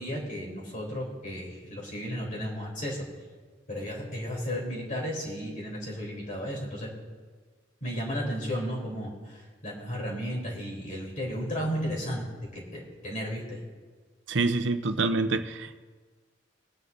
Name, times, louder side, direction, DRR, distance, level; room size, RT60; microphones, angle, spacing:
voice 1, 0.0-3.0 3.7-6.9 7.8-13.6, equal, 45° left, -3 dB, 3.4 m, -34 dB
voice 2, 14.3-15.8, right 3 dB, 75° right, 10 dB, 0.7 m, -27 dB
22.0 x 9.6 x 2.7 m, 1.4 s
head